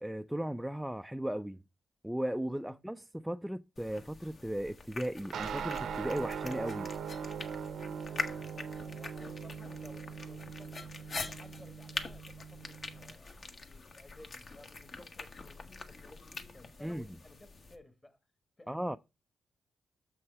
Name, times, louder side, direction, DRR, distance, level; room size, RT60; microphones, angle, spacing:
voice 1, 0.0-1.6 2.0-6.9 16.8-17.1 18.7-19.0, right 1 dB, 5° right, 0.3 m, -36 dB
sound 1, 3.8-17.8, left 3 dB, 50° left, 1.2 m, -44 dB
sound 2, 5.3-13.1, right 7 dB, 80° right, 0.7 m, -41 dB
voice 2, 8.1-10.9 11.2-13.3 13.7-18.2 18.6-19.0, left 2 dB, 20° left, 1.3 m, -57 dB
7.0 x 6.0 x 4.6 m
cardioid pair, 100°, 0 cm